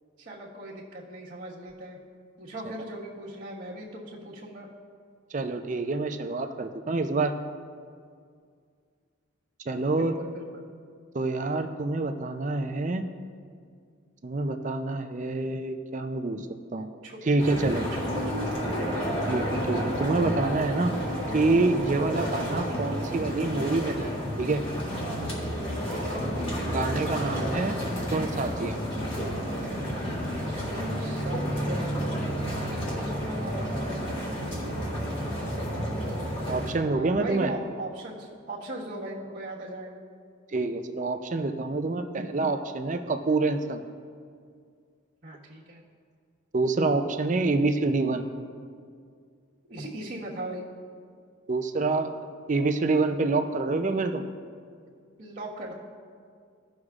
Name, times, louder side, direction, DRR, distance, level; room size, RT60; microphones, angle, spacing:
voice 1, 0.2-2.0 2.4-4.7 9.8-10.6 16.9-17.2 17.4-18.5 18.9-19.2 25.8-26.2 30.4-35.4 35.7-36.3 36.9-40.0 45.2-45.8 49.7-50.6 55.2-55.7, right 1 dB, 60° right, -10 dB, 1.5 m, -39 dB
voice 2, 5.3-7.3 9.7-10.1 11.1-13.0 14.2-16.9 17.3-17.9 19.3-20.9 21.3-24.1 24.4-24.6 26.6-27.8 28.1-28.8 36.5-37.5 40.5-43.8 46.5-48.2 51.5-52.1 52.5-54.2, right 3 dB, 40° right, 7 dB, 0.5 m, -27 dB
sound 1, 17.4-36.7, equal, 30° left, 2.0 m, -31 dB
16.0 x 6.3 x 2.4 m, 2.2 s
head